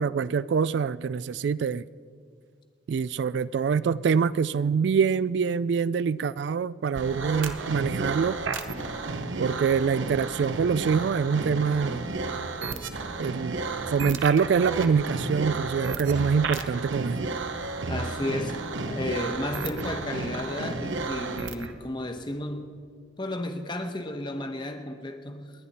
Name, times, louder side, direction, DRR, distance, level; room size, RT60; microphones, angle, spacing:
voice 1, 0.0-1.8 2.9-8.4 9.4-12.0 13.2-13.6 13.9-17.3, right 6 dB, 65° right, 0.3 m, -25 dB
sound 1, 6.9-21.7, right 3 dB, 90° right, 1.0 m, -32 dB
voice 2, 17.9-22.7 23.2-25.5, left 1 dB, 25° left, 1.1 m, -33 dB
30.0 x 10.5 x 4.2 m
head